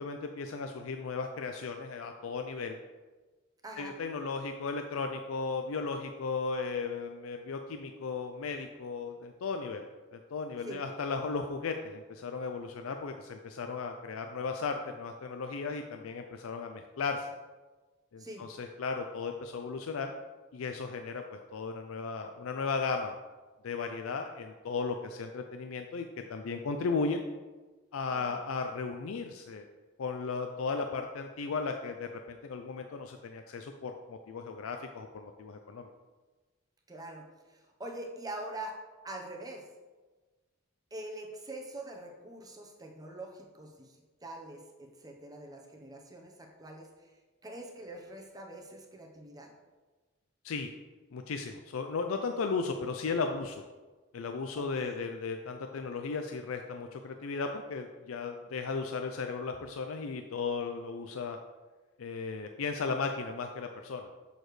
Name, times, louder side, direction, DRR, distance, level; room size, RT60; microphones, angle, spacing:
voice 1, 0.0-2.8 3.8-9.8 10.1-17.3 18.1-20.1 20.5-23.1 23.6-27.2 27.9-29.7 30.0-35.9 50.4-50.7 51.1-53.6 54.1-61.4 62.0-64.1, left 4 dB, 80° left, 5 dB, 0.4 m, -35 dB
voice 2, 3.6-3.9 10.6-10.8 18.2-18.5 28.1-28.4 36.9-38.8 39.0-39.7 40.9-47.1 47.4-49.5 54.6-55.0, right 1 dB, 20° right, 1 dB, 0.9 m, -44 dB
6.8 x 6.4 x 3.2 m, 1.3 s
head